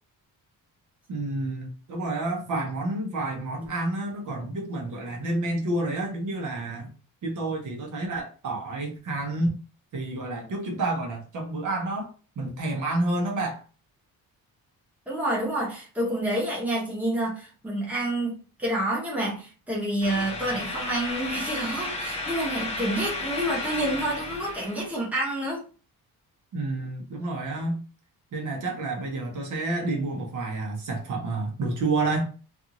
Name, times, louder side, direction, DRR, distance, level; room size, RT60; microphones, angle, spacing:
voice 1, 1.1-6.9 7.2-9.5 9.9-13.6 26.5-27.8 28.3-32.2, right 2 dB, 55° right, 0.9 m, -29 dB
voice 2, 15.1-25.6, right 1 dB, 5° right, 1.0 m, -28 dB
sound 1, 20.0-25.0, left 2 dB, 15° left, 0.7 m, -33 dB
2.6 x 2.5 x 2.8 m
cardioid pair, 170°, 37 cm